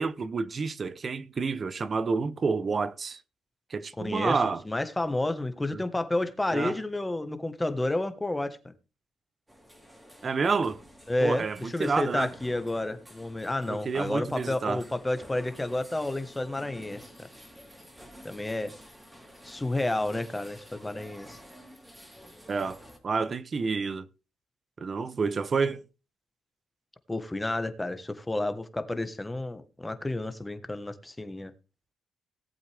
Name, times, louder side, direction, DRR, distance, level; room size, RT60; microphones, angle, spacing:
voice 1, 0.0-3.2 3.7-4.6 5.7-5.8 6.5-6.7 10.2-10.8 11.2-12.3 13.7-14.8 22.5-24.1 24.8-25.8, right 4 dB, 40° right, 0.8 m, -29 dB
voice 2, 4.0-8.7 11.1-17.3 18.2-18.7 19.4-21.4 27.1-31.5, left 2 dB, 15° left, 1.4 m, -31 dB
sound 1, 9.5-23.0, equal, 10° right, 3.2 m, -51 dB
18.0 x 7.9 x 3.5 m
cardioid pair, 90°, 0 cm